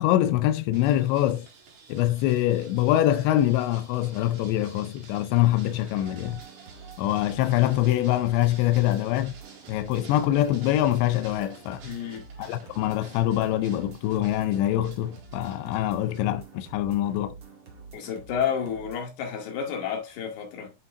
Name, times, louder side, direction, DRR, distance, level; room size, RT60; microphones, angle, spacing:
voice 1, 0.0-1.5 1.9-6.4 7.0-9.4 9.7-11.8 12.4-17.4, left 13 dB, 80° left, 2.6 m, -24 dB
sound 1, 0.7-16.2, right 5 dB, 65° right, 5.5 m, -51 dB
sound 2, 6.1-19.0, right 5 dB, 50° right, 1.7 m, -47 dB
voice 2, 11.8-12.3 17.9-20.7, left 7 dB, 65° left, 4.1 m, -31 dB
11.5 x 5.4 x 2.5 m
omnidirectional pair, 5.8 m